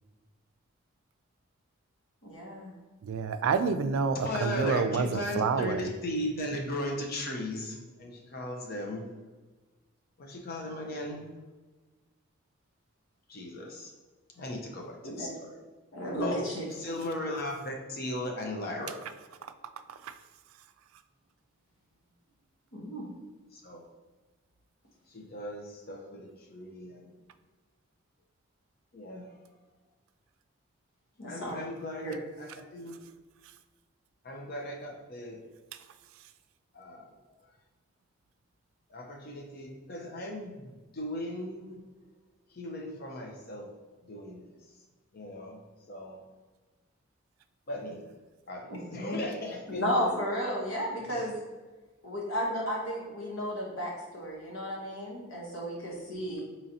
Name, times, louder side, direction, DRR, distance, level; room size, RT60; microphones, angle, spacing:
voice 1, 2.2-2.7 15.0-15.3 15.9-16.6 22.7-23.1 31.2-31.6 32.0-32.1 48.7-49.2 49.7-51.4 52.0-56.4, equal, 75° left, 1.1 m, -33 dB
voice 2, 3.0-5.9 20.0-20.1, right 5 dB, 85° right, 0.3 m, -28 dB
voice 3, 4.2-9.1 10.2-11.3 13.3-13.9 14.4-15.6 16.2-16.4 16.7-19.0 23.5-23.8 25.1-27.1 28.9-29.3 31.3-32.1 32.4-33.0 34.2-35.4 36.7-37.2 38.9-41.9 42.5-43.7 44.0-44.6 45.1-45.6 45.9-46.2 47.7-48.1 48.5-49.8 51.1-51.3 56.3-56.4, left 1 dB, 50° left, 0.6 m, -37 dB
4.0 x 3.0 x 2.7 m
head